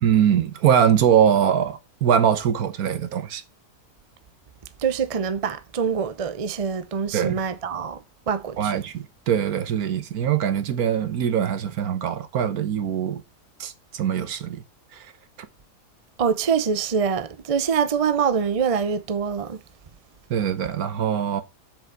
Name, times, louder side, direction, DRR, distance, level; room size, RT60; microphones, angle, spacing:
voice 1, 0.0-3.4 7.1-7.4 8.6-13.2 13.6-14.6 14.9-15.1 20.3-21.4, right 8 dB, 65° right, 1.3 m, -22 dB
voice 2, 4.8-8.0 8.3-8.8 16.2-19.6, right 6 dB, 45° right, 0.4 m, -24 dB
7.5 x 5.7 x 4.6 m
omnidirectional pair, 1.7 m